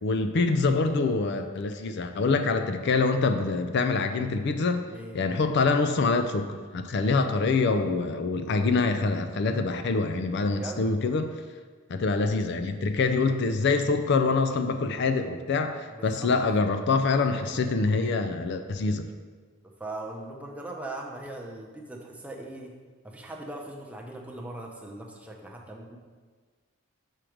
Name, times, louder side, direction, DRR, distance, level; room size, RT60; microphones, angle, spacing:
voice 1, 0.0-4.8 5.1-11.3 11.9-19.0, left 4 dB, 55° left, 8 dB, 0.4 m, -25 dB
voice 2, 10.5-10.8 15.9-16.6 19.8-22.7 23.0-26.0, right 2 dB, 5° right, 0 dB, 0.6 m, -40 dB
6.2 x 4.5 x 5.0 m, 1.5 s
head